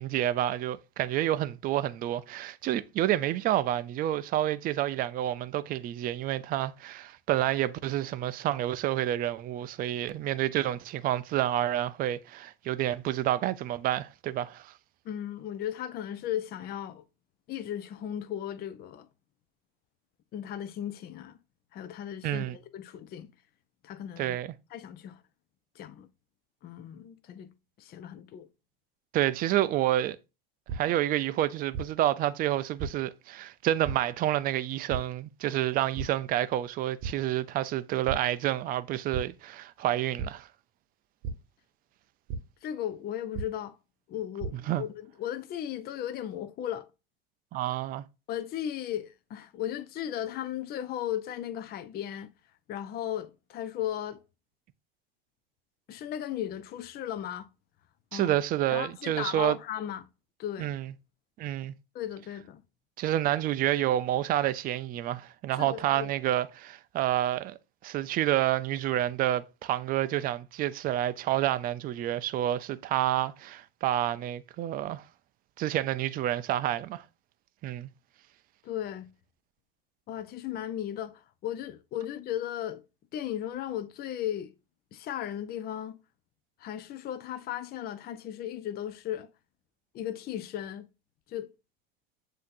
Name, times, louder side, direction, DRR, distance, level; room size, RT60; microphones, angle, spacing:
voice 1, 0.0-14.7 22.2-22.6 24.2-24.5 29.1-30.2 30.7-40.5 44.5-44.8 47.5-48.0 58.1-59.6 60.6-60.9 61.4-61.7 63.0-67.6 67.8-75.0 75.6-77.0 77.6-77.9, right 13 dB, 30° right, 0.4 m, -29 dB
voice 2, 15.0-17.0 17.5-19.1 20.3-21.4 21.7-23.3 23.8-24.4 24.7-25.2 25.8-26.1 26.6-27.5 27.8-28.5 42.6-43.7 44.1-46.9 48.3-52.3 52.7-54.2 55.9-57.5 58.1-58.4 58.7-60.1 60.4-60.7 61.9-62.6 65.5-66.1 78.6-79.1 80.1-82.8 83.1-84.5 84.9-86.0 86.6-89.3 89.9-90.9 91.3-91.5, left 11 dB, 35° left, 0.5 m, -36 dB
sound 1, 30.7-30.8 31.7-31.8 32.8-32.9 33.8-33.9 34.9-35.0 35.9-36.0 36.5-36.7 37.0-37.1 38.1-38.2 39.1-39.2 40.2-40.3 41.2-41.3 42.3-42.4 43.3-43.4 44.1-44.5, right 6 dB, 50° right, 1.0 m, -33 dB
7.3 x 2.8 x 2.5 m
hypercardioid pair, 95°, 29 cm